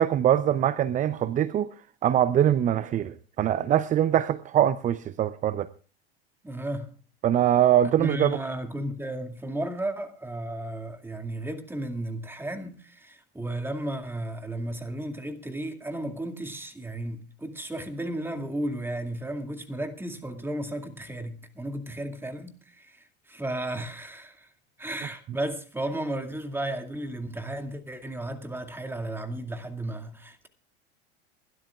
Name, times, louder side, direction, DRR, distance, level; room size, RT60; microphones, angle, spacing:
voice 1, 0.0-1.7 2.0-5.7 7.2-8.4, right 11 dB, 25° right, 0.6 m, -23 dB
voice 2, 6.4-6.9 7.8-24.5 24.8-30.5, right 1 dB, 5° right, 2.2 m, -34 dB
28.0 x 12.5 x 2.4 m
hypercardioid pair, 90°, 31 cm